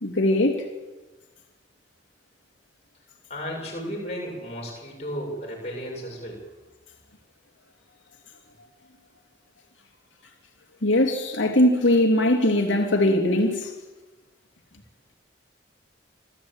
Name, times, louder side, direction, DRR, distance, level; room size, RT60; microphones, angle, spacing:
voice 1, 0.0-0.6 10.8-13.7, left 1 dB, 85° left, 2.9 m, -20 dB
voice 2, 3.3-6.4, equal, 35° left, 7.1 m, -34 dB
27.5 x 14.0 x 9.0 m
head